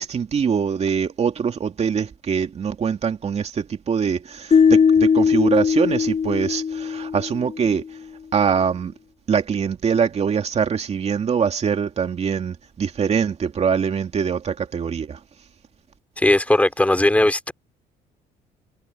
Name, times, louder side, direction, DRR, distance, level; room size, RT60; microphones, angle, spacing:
voice 1, 0.0-7.8 8.3-8.9 9.3-15.2, right 7 dB, 40° right, 2.6 m, -23 dB
sound 1, 4.5-7.7, left 6 dB, 35° left, 7.4 m, -19 dB
voice 2, 16.2-17.5, left 1 dB, 10° left, 3.2 m, -18 dB
cardioid pair, 110°, 17 cm